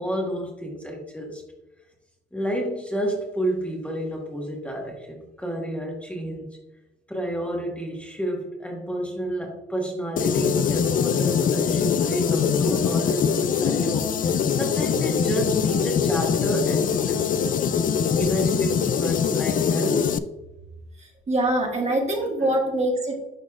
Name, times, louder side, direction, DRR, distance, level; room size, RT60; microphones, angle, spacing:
voice 1, 0.0-1.4 2.3-6.6 7.1-14.1 14.5-17.6 18.1-20.1 22.2-22.5, right 1 dB, 5° left, -1 dB, 1.5 m, -30 dB
sound 1, 10.2-20.2, left 7 dB, 45° left, 0.4 m, -23 dB
voice 2, 21.3-23.2, right 1 dB, 35° right, 0 dB, 1.6 m, -23 dB
11.0 x 4.0 x 2.4 m, 0.98 s
cardioid pair, 90°, 20 cm